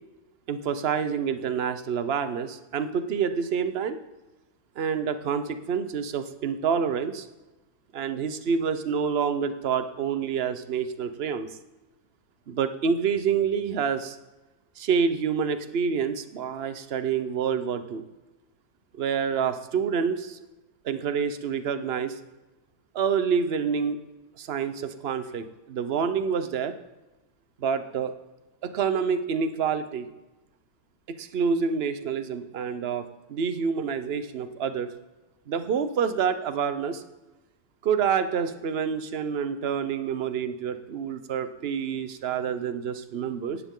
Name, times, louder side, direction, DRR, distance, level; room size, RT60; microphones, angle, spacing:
voice 1, 0.5-4.0 4.8-7.3 7.9-11.5 12.5-14.2 14.8-18.0 19.0-20.4 20.8-22.1 22.9-24.0 24.4-26.7 27.6-28.1 28.6-30.1 31.1-34.9 35.5-37.0 37.8-43.6, right 6 dB, 45° right, 10 dB, 0.9 m, -27 dB
17.5 x 13.0 x 3.8 m, 1.1 s
omnidirectional pair, 1.8 m